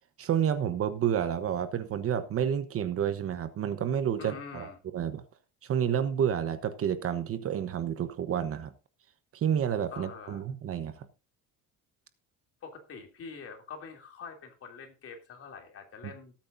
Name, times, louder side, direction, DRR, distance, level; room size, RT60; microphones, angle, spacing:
voice 1, 0.2-5.2 5.6-8.7 9.3-11.1, right 9 dB, 45° right, 1.0 m, -30 dB
voice 2, 4.2-4.8 9.9-10.4 12.6-16.3, left 5 dB, 45° left, 3.0 m, -45 dB
19.0 x 8.7 x 2.6 m
cardioid pair, 155°, 32 cm